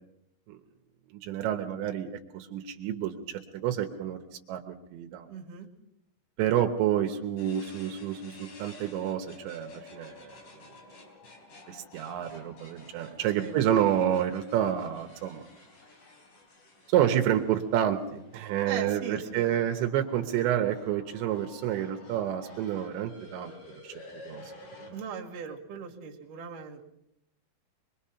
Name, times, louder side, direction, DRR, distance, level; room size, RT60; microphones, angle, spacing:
voice 1, 1.1-4.2 4.5-5.3 6.4-10.4 11.7-15.4 16.9-23.5 23.8-23.9 24.2-24.5, right 10 dB, 85° right, 5 dB, 3.4 m, -29 dB
voice 2, 5.3-5.7 13.3-13.6 18.6-19.6 24.9-26.8, right 6 dB, 55° right, -1 dB, 3.5 m, -38 dB
sound 1, 7.4-24.9, left 2 dB, 50° left, 4.7 m, -51 dB
24.5 x 22.5 x 5.8 m, 0.80 s
omnidirectional pair, 5.0 m